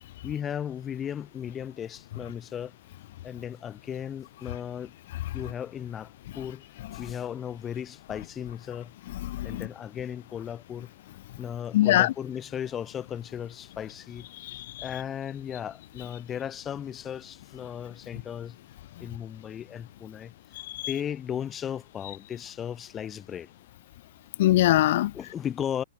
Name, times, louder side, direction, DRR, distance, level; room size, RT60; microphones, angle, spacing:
voice 1, 0.2-2.7 3.2-4.9 5.3-6.6 6.9-8.9 9.4-10.9 11.4-14.3 14.8-18.6 19.0-20.3 20.9-23.5 25.1-25.8, left 9 dB, 20° left, 2.7 m, -36 dB
voice 2, 9.2-9.6 11.7-12.1 14.4-14.8 20.7-20.9 24.4-25.1, left 15 dB, 50° left, 0.4 m, -23 dB
hypercardioid pair, 125°, 0 cm